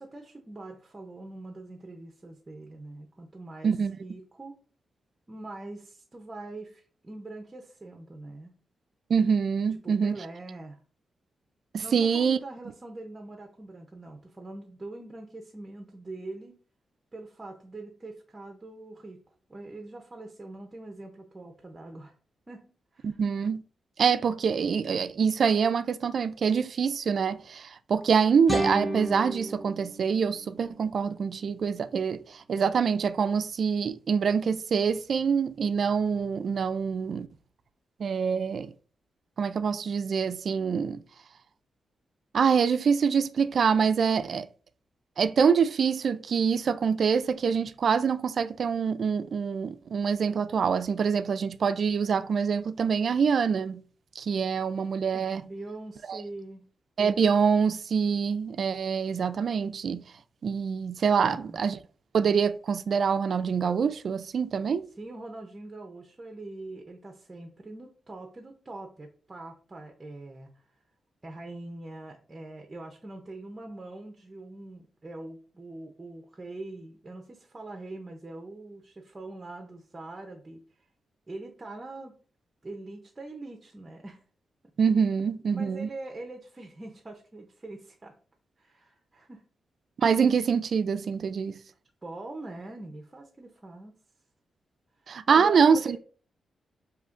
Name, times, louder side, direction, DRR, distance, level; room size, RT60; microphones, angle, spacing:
voice 1, 0.0-3.7 4.0-4.6 5.3-8.5 9.8-10.8 11.8-16.6 17.1-19.2 19.5-22.1 22.5-23.2 55.4-56.6 61.2-61.6 65.0-70.6 71.2-80.9 81.3-82.2 82.6-84.2 85.5-88.2 88.6-89.4 92.0-93.9 95.0-96.0, right 2 dB, 25° right, 0.6 m, -43 dB
voice 2, 3.6-4.0 9.1-10.2 11.7-12.4 23.0-23.6 24.0-37.3 38.0-38.7 39.4-41.0 42.3-44.5 45.2-53.8 54.2-55.5 56.1-56.2 57.0-60.0 60.4-61.8 62.1-64.9 84.8-85.9 90.0-91.6 95.1-96.0, right 6 dB, 60° right, 0.3 m, -25 dB
sound 1, 28.5-31.5, right 1 dB, 5° left, 0.9 m, -33 dB
6.5 x 2.8 x 2.5 m
cardioid pair, 100°, 0 cm